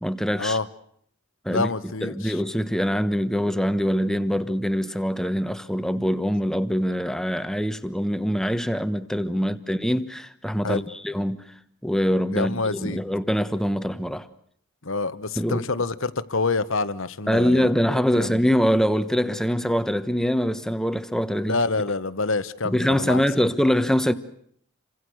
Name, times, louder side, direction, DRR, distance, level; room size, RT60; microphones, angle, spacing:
voice 1, 0.0-0.6 1.4-1.7 2.0-11.5 11.8-14.3 15.4-15.7 17.3-21.6 22.6-24.1, equal, ahead, 1.1 m, -24 dB
voice 2, 1.5-2.4 9.4-9.5 10.6-10.8 12.3-13.0 14.8-17.7 18.1-18.4 21.4-23.2, left 3 dB, 60° left, 1.3 m, -27 dB
29.0 x 25.0 x 6.4 m
head